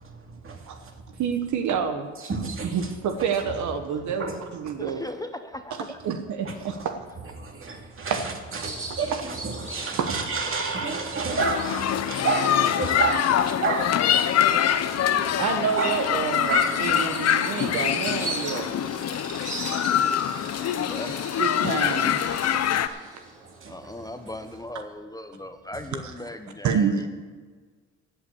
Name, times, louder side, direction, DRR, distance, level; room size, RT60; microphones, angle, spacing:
voice 1, 0.0-1.2 2.2-3.5 4.2-4.4 4.7-4.8 6.5-6.9 7.4-15.4 15.8-16.0 16.5-17.0 17.5-17.6 18.5-18.7 23.4-24.3, right 4 dB, 45° right, 2.3 m, -31 dB
voice 2, 1.2-2.1 2.7-4.3 4.5-5.0 6.0-7.1 10.0-10.1 15.4-18.9 21.4-23.1 26.6-27.1, right 6 dB, 70° right, 1.1 m, -28 dB
voice 3, 4.8-6.0 18.3-18.9 20.5-21.2 23.7-27.1, left 1 dB, 10° left, 0.7 m, -38 dB
Bird vocalization bird call bird song, 8.6-24.6, right 2 dB, 25° right, 3.2 m, -41 dB
sound 1, 11.4-22.9, left 10 dB, 55° left, 0.7 m, -24 dB
15.5 x 5.7 x 8.4 m
cardioid pair, 90°, 30 cm